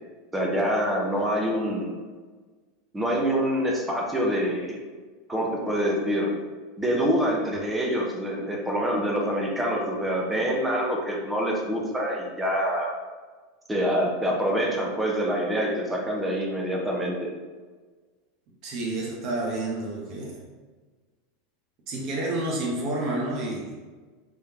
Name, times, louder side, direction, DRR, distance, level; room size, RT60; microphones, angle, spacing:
voice 1, 0.3-1.9 2.9-4.8 5.3-6.3 6.8-13.0 13.7-17.3, equal, 10° right, -1 dB, 0.9 m, -26 dB
voice 2, 18.6-20.4 21.9-23.7, right 2 dB, 50° right, -3 dB, 1.1 m, -29 dB
3.7 x 3.2 x 3.0 m, 1.4 s
figure-of-eight pair, 80°, 0 cm